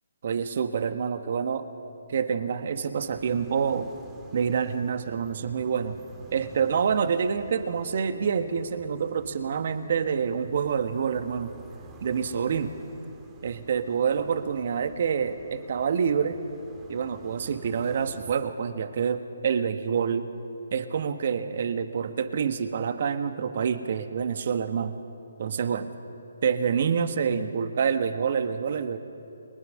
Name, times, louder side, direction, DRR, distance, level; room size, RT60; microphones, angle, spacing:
voice 1, 0.2-1.7 2.1-3.9 4.3-6.0 6.3-11.5 12.0-12.7 13.4-16.4 16.9-20.3 20.7-25.0 25.4-25.9 26.4-29.0, right 6 dB, 50° right, 9 dB, 1.3 m, -27 dB
sound 1, 3.0-18.4, right 4 dB, 20° right, 2.2 m, -50 dB
30.0 x 21.5 x 6.4 m, 2.7 s
hypercardioid pair, 150°, 0 cm